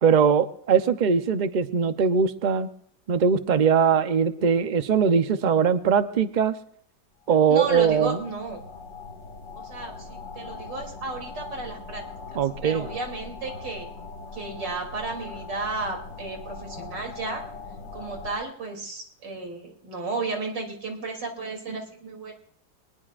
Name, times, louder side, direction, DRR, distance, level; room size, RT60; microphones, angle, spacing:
voice 1, 0.0-2.7 3.1-6.5 7.3-8.2 12.3-12.9, right 6 dB, 45° right, 10 dB, 0.6 m, -21 dB
sound 1, 7.3-18.4, left 4 dB, 75° left, 2.6 m, -40 dB
voice 2, 7.5-8.6 9.6-12.0 12.3-13.9 14.3-17.4 17.9-22.3, right 3 dB, 80° right, 2 dB, 3.8 m, -33 dB
25.0 x 19.5 x 2.5 m, 0.68 s
omnidirectional pair, 1.9 m